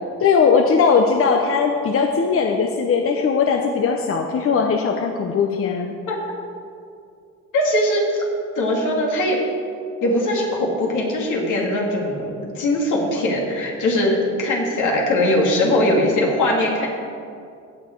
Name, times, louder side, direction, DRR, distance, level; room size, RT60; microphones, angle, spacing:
voice 1, 0.2-5.9, left 5 dB, 45° left, 4 dB, 0.8 m, -19 dB
voice 2, 7.5-8.0 8.6-9.4 10.0-12.3 12.6-16.9, left 1 dB, 80° left, -1 dB, 2.5 m, -20 dB
16.5 x 6.7 x 4.6 m, 2.4 s
cardioid pair, 90°, 30 cm